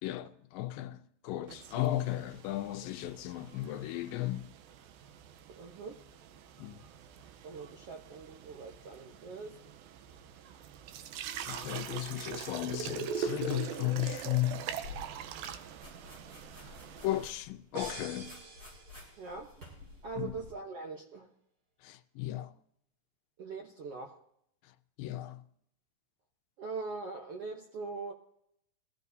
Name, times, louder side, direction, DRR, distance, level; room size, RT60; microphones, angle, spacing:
voice 1, 0.0-4.5 6.6-6.8 11.5-14.6 16.6-16.7 17.0-18.4 20.2-20.4 21.8-22.5 25.0-25.4, left 14 dB, 85° left, 2.4 m, -35 dB
sound 1, 1.5-17.3, right 8 dB, 85° right, 2.6 m, -43 dB
voice 2, 5.5-6.0 7.4-9.6 19.2-19.5 20.0-21.3 23.4-24.2 26.6-28.1, right 4 dB, 65° right, 1.5 m, -42 dB
sound 2, 14.8-20.5, left 3 dB, 25° right, 5.7 m, -51 dB
sound 3, 17.7-19.5, right 2 dB, 45° right, 2.0 m, -46 dB
22.0 x 15.0 x 2.7 m
omnidirectional pair, 4.1 m